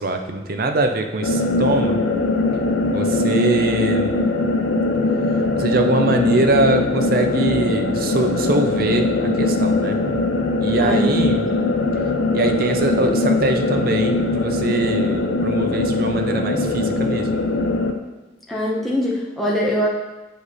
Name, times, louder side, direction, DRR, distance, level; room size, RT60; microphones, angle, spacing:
voice 1, 0.0-2.0 2.9-4.2 5.6-10.0 10.6-11.5 12.3-17.5, right 2 dB, 50° right, 5 dB, 0.6 m, -22 dB
sound 1, 1.2-17.9, left 2 dB, 85° left, 0.6 m, -21 dB
voice 2, 10.8-11.8 18.5-19.9, equal, ahead, -5 dB, 1.2 m, -23 dB
8.1 x 5.1 x 4.2 m, 1.1 s
head